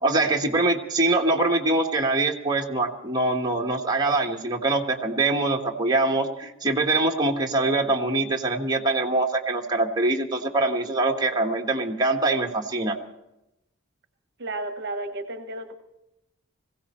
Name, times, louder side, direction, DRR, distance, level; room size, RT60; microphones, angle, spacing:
voice 1, 0.0-13.0, right 2 dB, 20° right, 2 dB, 1.3 m, -24 dB
voice 2, 14.4-15.7, right 2 dB, 55° right, 8 dB, 1.0 m, -32 dB
20.5 x 16.5 x 4.3 m, 0.90 s
head